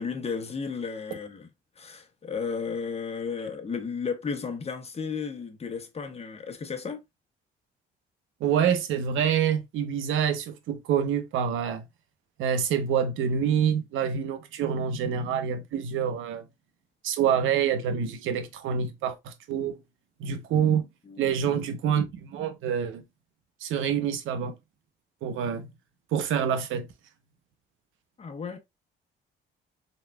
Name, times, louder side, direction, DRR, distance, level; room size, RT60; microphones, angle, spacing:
voice 1, 0.0-1.5 1.8-7.0 21.1-21.4 28.2-28.6, left 5 dB, 30° left, 1.1 m, -34 dB
voice 2, 8.4-11.8 12.4-16.4 17.0-19.8 20.2-20.9 21.2-23.0 23.6-24.6 25.2-25.7 26.1-26.9, right 8 dB, 90° right, 0.8 m, -26 dB
4.1 x 3.7 x 2.2 m
cardioid pair, 90°, 20 cm